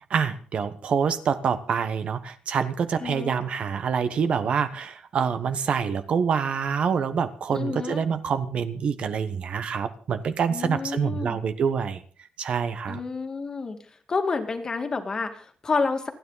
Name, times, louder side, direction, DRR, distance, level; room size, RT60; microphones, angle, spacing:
voice 1, 0.1-12.0 12.4-13.0, right 6 dB, 50° right, 11 dB, 1.2 m, -26 dB
voice 2, 3.0-3.4 7.5-8.0 10.5-11.4 12.9-13.8 14.1-16.1, left 4 dB, 30° left, 6 dB, 2.1 m, -29 dB
29.0 x 9.9 x 4.0 m, 0.42 s
cardioid pair, 150°, 2 cm